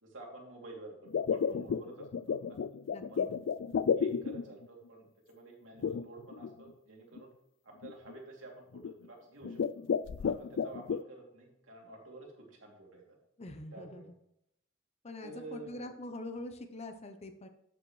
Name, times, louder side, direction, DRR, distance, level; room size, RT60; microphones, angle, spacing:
voice 1, 0.0-2.6 3.1-3.2 3.9-7.3 7.6-9.6 10.2-13.0 13.7-14.1 15.2-15.9, right 2 dB, 85° right, -1 dB, 2.8 m, -50 dB
sound 1, 1.1-4.6 5.8-6.5 7.2-7.3 7.8-8.1 8.7-9.1 9.4-11.0, left 6 dB, 70° left, 0.3 m, -32 dB
voice 2, 2.9-3.3 13.4-14.1 15.0-17.5, left 1 dB, 35° left, 7 dB, 0.7 m, -44 dB
12.0 x 8.1 x 3.2 m, 0.79 s
head